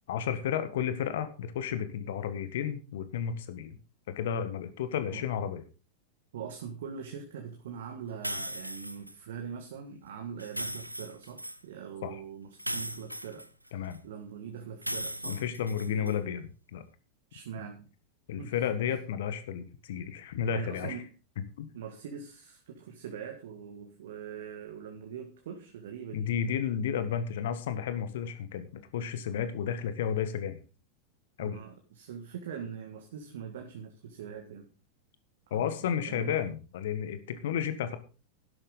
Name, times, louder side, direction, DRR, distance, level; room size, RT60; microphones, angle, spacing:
voice 1, 0.1-3.8 4.1-5.6 12.0-12.2 13.7-14.0 15.3-16.4 16.7-16.8 18.3-21.0 21.6-21.7 26.1-30.6 31.4-31.6 35.5-38.0, left 8 dB, 55° left, 11 dB, 1.7 m, -32 dB
voice 2, 6.3-15.4 15.9-16.2 17.3-17.9 18.4-19.0 20.5-21.1 21.7-26.3 31.4-34.7 35.5-36.5, right 7 dB, 60° right, 4 dB, 1.8 m, -43 dB
sound 1, 8.2-9.1 10.4-11.6 12.6-14.0 14.8-16.2, equal, 90° right, 0.7 m, -37 dB
12.5 x 11.0 x 3.9 m, 0.35 s
figure-of-eight pair, 90°, 0 cm